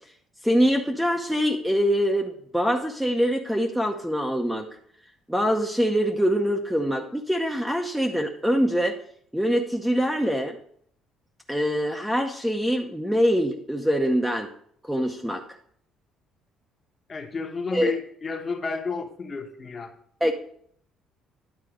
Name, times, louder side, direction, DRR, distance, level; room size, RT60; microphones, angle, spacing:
voice 1, 0.4-4.7 5.3-9.0 9.3-10.6 11.5-14.5 14.8-15.4 17.7-17.9 20.2-20.3, equal, ahead, 2 dB, 0.7 m, -24 dB
voice 2, 17.1-19.9, left 4 dB, 30° left, 4 dB, 1.2 m, -31 dB
10.5 x 4.0 x 6.3 m, 0.63 s
cardioid pair, 135°, 0 cm